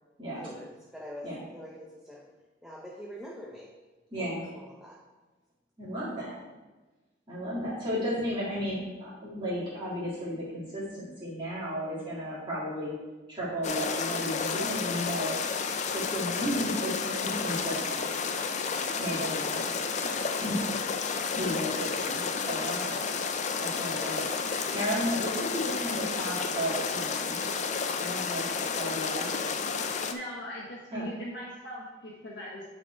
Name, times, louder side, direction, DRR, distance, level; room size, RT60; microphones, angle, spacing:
voice 1, 0.3-2.3 2.6-3.7 4.1-5.0 20.3-21.0 22.1-22.4, equal, 5° right, -3 dB, 0.7 m, -45 dB
voice 2, 4.1-4.4 5.8-6.4 7.3-12.9 13.3-15.4 15.9-18.1 19.0-19.7 20.4-20.5 21.3-22.2 22.5-23.0 23.6-27.4 28.0-29.3 30.9-31.1, equal, 25° right, -9 dB, 2.3 m, -34 dB
sound 1, 13.6-30.1, left 5 dB, 40° left, 0.4 m, -31 dB
voice 3, 30.1-32.6, equal, 60° left, -4 dB, 1.3 m, -40 dB
9.1 x 4.2 x 4.5 m, 1.2 s
head